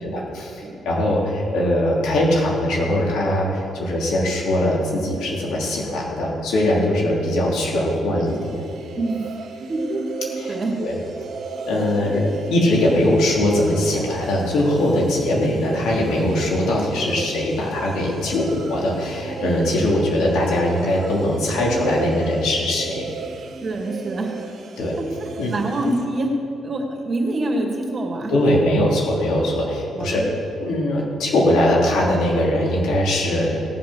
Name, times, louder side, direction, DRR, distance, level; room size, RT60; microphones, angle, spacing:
voice 1, 0.0-8.6 10.4-10.9 11.7-23.1 24.8-24.9 25.4-25.5 28.3-30.2 30.6-33.6, left 1 dB, 80° left, -3 dB, 3.0 m, -21 dB
sound 1, 8.3-26.1, right 5 dB, 65° right, 1.2 m, -35 dB
voice 2, 9.0-9.3 9.7-10.0 10.5-10.8 21.5-21.7 23.6-24.5 25.0-26.3 26.6-28.3 29.9-30.2, right 2 dB, 35° right, 1 dB, 2.3 m, -26 dB
17.5 x 5.9 x 6.4 m, 2.5 s
cardioid pair, 90°, 0 cm